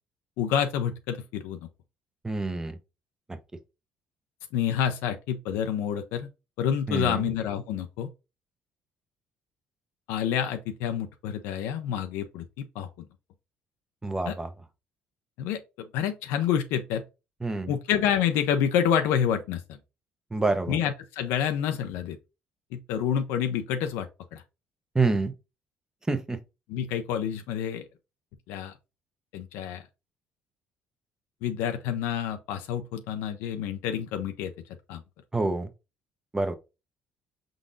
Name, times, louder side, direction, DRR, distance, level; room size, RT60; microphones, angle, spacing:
voice 1, 0.4-1.7 4.5-6.3 6.6-8.1 10.1-12.9 14.3-14.4 15.4-17.0 17.7-19.8 20.7-22.2 22.7-24.4 26.7-27.9 28.5-28.7 29.3-29.8 31.4-34.5 34.9-35.0, left 9 dB, 85° left, 0.5 m, -28 dB
voice 2, 2.2-2.8 3.3-3.4 6.9-7.3 14.0-14.5 17.4-17.8 20.3-20.8 24.9-25.3 26.1-26.4 35.3-35.7 36.3-36.6, right 3 dB, 15° right, 0.7 m, -27 dB
4.8 x 3.8 x 2.6 m
supercardioid pair, 85°, 4 cm